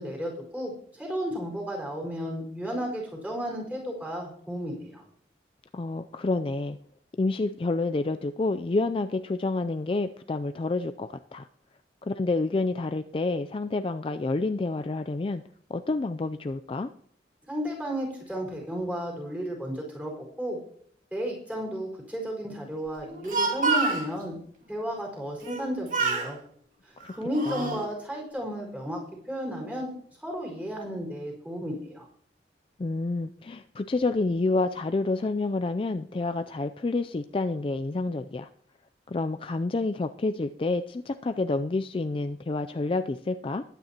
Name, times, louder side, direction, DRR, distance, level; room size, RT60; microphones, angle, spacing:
voice 1, 0.0-5.0 17.5-20.6 21.1-24.4 24.7-26.4 27.1-29.0 29.2-29.9 30.2-32.1, equal, 10° right, -1 dB, 4.6 m, -33 dB
voice 2, 5.7-6.8 7.2-11.5 12.0-15.4 15.7-16.9 27.0-27.1 27.5-27.8 32.8-38.5 39.1-43.6, left 3 dB, 30° left, 8 dB, 0.4 m, -29 dB
Speech, 23.0-24.1 25.4-25.7 25.9-26.3 27.0-27.8, right 3 dB, 45° right, 2.4 m, -27 dB
20.5 x 9.2 x 2.9 m, 0.65 s
head